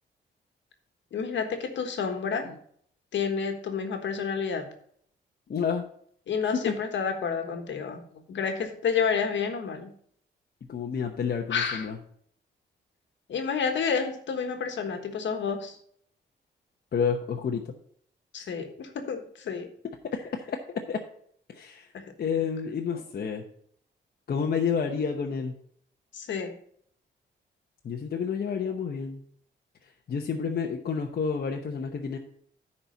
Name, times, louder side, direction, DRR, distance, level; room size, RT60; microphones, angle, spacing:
voice 1, 1.1-2.6 3.1-4.7 6.3-8.0 8.3-9.9 11.5-11.9 13.3-15.8 18.3-19.7 21.9-22.0 22.9-23.0 26.1-26.6, left 6 dB, 70° left, 5 dB, 1.5 m, -30 dB
voice 2, 5.5-5.8 6.5-6.7 10.7-12.0 16.9-17.7 20.0-20.6 20.9-21.0 21.5-21.9 22.2-23.4 24.3-25.5 27.8-29.2 29.8-32.2, left 6 dB, 55° left, 2 dB, 0.9 m, -29 dB
10.5 x 4.3 x 5.2 m, 0.63 s
cardioid pair, 75°, 20 cm